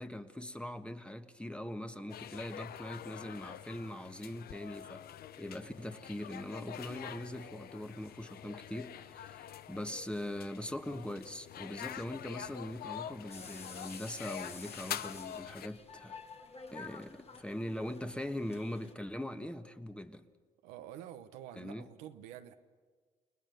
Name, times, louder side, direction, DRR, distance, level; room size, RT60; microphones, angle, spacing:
voice 1, 0.0-5.0 5.4-16.2 16.7-20.2 21.6-21.8, left 1 dB, 5° left, 1.5 m, -41 dB
sound 1, 2.1-15.7, left 10 dB, 65° left, 0.7 m, -46 dB
sound 2, 13.3-18.9, left 4 dB, 40° left, 1.9 m, -51 dB
voice 2, 20.6-22.5, right 11 dB, 90° right, 1.0 m, -48 dB
30.0 x 20.0 x 6.6 m
supercardioid pair, 55°, 17 cm